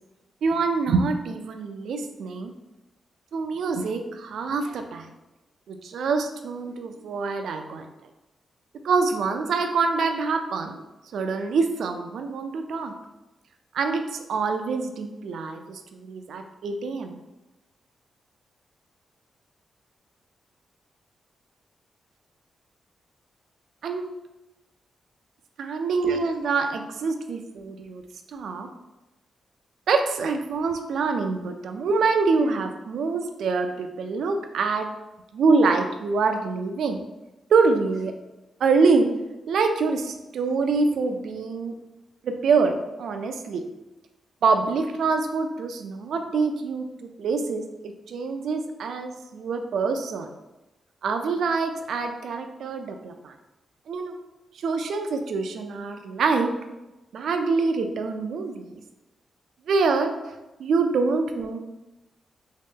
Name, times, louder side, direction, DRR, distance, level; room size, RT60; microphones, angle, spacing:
voice 1, 0.4-2.5 3.3-5.1 5.7-7.9 8.8-10.8 11.1-12.9 13.7-17.2 23.8-24.1 25.6-28.0 28.3-28.7 29.9-34.9 35.3-37.0 37.5-38.1 38.6-39.1 39.5-41.7 42.2-43.6 44.4-47.6 48.1-50.3 51.0-53.3 53.9-54.1 54.6-56.5 57.1-58.8 59.7-61.6, right 4 dB, 75° right, 6 dB, 0.3 m, -25 dB
3.0 x 2.8 x 3.5 m, 1.0 s
wide cardioid pair, 160°, 0 cm